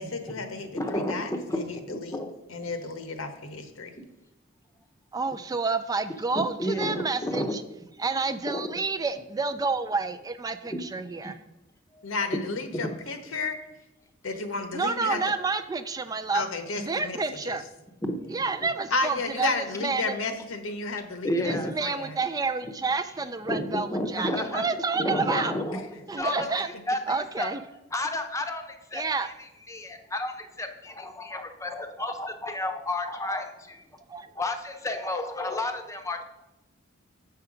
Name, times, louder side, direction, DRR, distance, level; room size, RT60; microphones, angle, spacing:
voice 1, 0.0-2.2 2.5-3.9 12.0-13.6 14.2-15.2 16.3-17.2 17.5-17.6 18.9-22.2, left 3 dB, 80° left, 8 dB, 1.0 m, -32 dB
voice 2, 0.5-2.3 2.6-2.7 4.0-4.1 6.3-7.6 8.5-8.7 10.6-10.8 11.2-11.3 11.9-12.0 12.3-12.4 12.7-13.0 18.0-18.3 21.2-21.8 23.5-27.5 27.9-33.8 34.3-36.2, left 1 dB, 15° left, 6 dB, 0.7 m, -32 dB
voice 3, 5.1-7.6 8.0-11.4 14.7-16.5 16.8-17.6 18.3-20.1 21.4-25.5 26.1-26.7 27.1-27.6 28.9-29.3 34.1-34.3, right 4 dB, 20° right, 10 dB, 0.3 m, -29 dB
7.8 x 5.8 x 4.9 m, 0.98 s
head